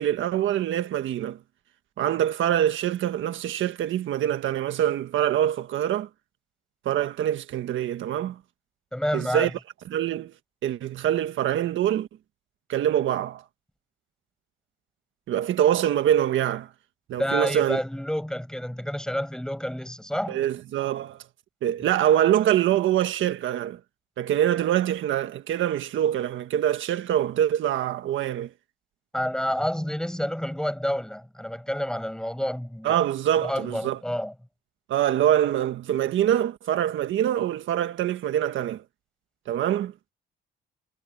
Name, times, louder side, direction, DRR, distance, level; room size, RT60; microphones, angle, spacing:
voice 1, 0.0-1.4 2.0-6.1 6.8-8.4 9.1-9.5 9.9-10.3 10.6-12.1 12.7-13.4 15.3-16.7 17.1-17.8 20.3-21.2 21.6-23.8 24.2-28.5 32.8-34.0 34.9-38.8 39.5-39.9, right 11 dB, 80° right, 1.5 m, -24 dB
voice 2, 8.9-9.5 17.2-20.4 29.1-33.0 33.4-34.3, equal, 5° left, 6.6 m, -29 dB
cardioid pair, 90°, 20 cm